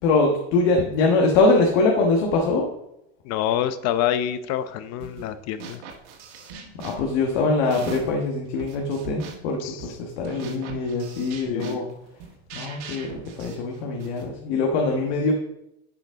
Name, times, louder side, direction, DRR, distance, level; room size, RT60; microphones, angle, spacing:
voice 1, 0.0-2.6 6.8-11.9 12.5-15.3, left 3 dB, 85° left, 1 dB, 1.5 m, -23 dB
voice 2, 3.2-5.8 9.6-9.9 11.5-11.8, left 10 dB, 50° left, 12 dB, 0.7 m, -27 dB
sound 1, 5.0-5.3 5.6-8.2 8.6-14.3, right 5 dB, 90° right, 1.7 m, -41 dB
10.5 x 5.1 x 3.7 m, 0.83 s
supercardioid pair, 135°, 34 cm